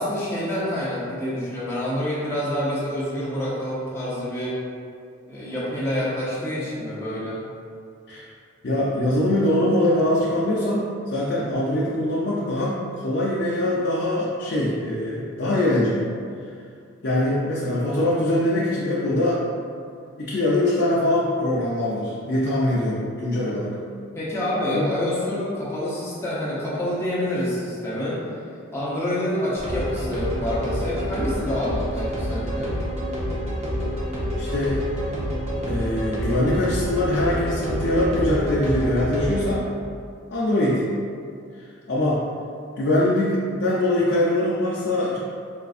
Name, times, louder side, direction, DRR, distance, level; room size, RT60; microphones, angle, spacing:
voice 1, 0.0-4.6 5.3-7.4 23.4-23.6 24.1-28.2 28.7-32.7, left 1 dB, 10° left, -9 dB, 0.8 m, -27 dB
voice 2, 8.6-16.0 17.0-19.4 20.2-23.7 24.7-24.9 34.4-34.8 35.6-39.6 40.3-40.8 41.9-42.2 42.8-45.2, left 1 dB, 55° left, -7 dB, 0.5 m, -23 dB
sound 1, 29.5-39.5, equal, 30° right, 0.6 m, -27 dB
4.4 x 2.4 x 2.5 m, 2.3 s
head